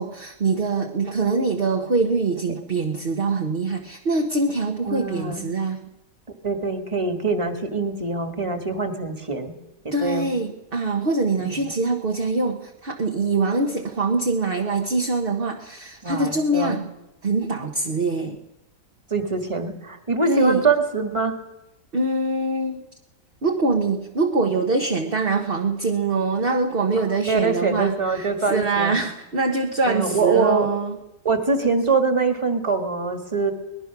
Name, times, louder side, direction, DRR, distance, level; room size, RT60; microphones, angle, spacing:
voice 1, 0.0-5.8 9.9-16.9 17.2-18.4 20.3-20.6 21.9-22.8 23.4-31.0, right 3 dB, 35° right, 2 dB, 1.2 m, -24 dB
voice 2, 4.9-5.5 6.4-9.5 9.8-10.3 11.4-11.7 16.0-16.8 19.1-21.4 26.9-29.0 29.9-30.7 31.2-33.5, right 4 dB, 20° right, 6 dB, 1.8 m, -24 dB
23.0 x 19.5 x 6.1 m, 0.97 s
omnidirectional pair, 1.8 m